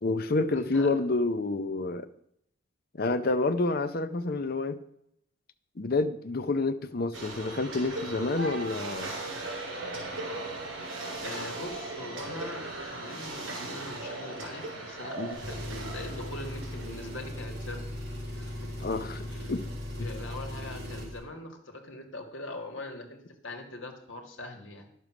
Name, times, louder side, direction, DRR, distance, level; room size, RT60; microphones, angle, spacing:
voice 1, 0.0-2.1 3.0-4.8 5.8-9.1 15.2-15.4 18.8-19.6 20.0-20.1, left 3 dB, 50° left, 0.6 m, -28 dB
voice 2, 0.5-0.9 11.2-18.9 19.3-19.5 20.0-24.9, left 2 dB, 75° left, 1.8 m, -42 dB
sound 1, 7.1-17.5, right 2 dB, 85° right, 3.8 m, -38 dB
Engine, 15.3-21.2, left 1 dB, 55° right, 3.7 m, -38 dB
11.0 x 6.9 x 6.0 m
head